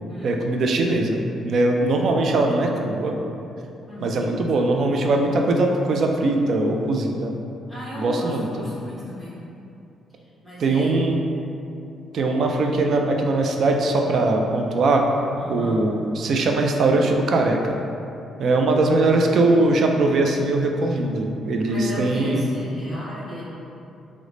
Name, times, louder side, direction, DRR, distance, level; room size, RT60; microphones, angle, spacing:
voice 1, 0.2-3.2 4.0-7.3 8.0-8.7 10.6-11.2 12.1-15.1 15.5-17.8 18.4-22.5, right 2 dB, 60° right, 2 dB, 0.3 m, -21 dB
voice 2, 3.9-4.4 7.7-9.4 10.4-11.0 15.4-15.9 21.7-23.4, equal, 10° right, -11 dB, 1.2 m, -35 dB
3.1 x 2.1 x 3.7 m, 2.7 s
cardioid pair, 90°, 0 cm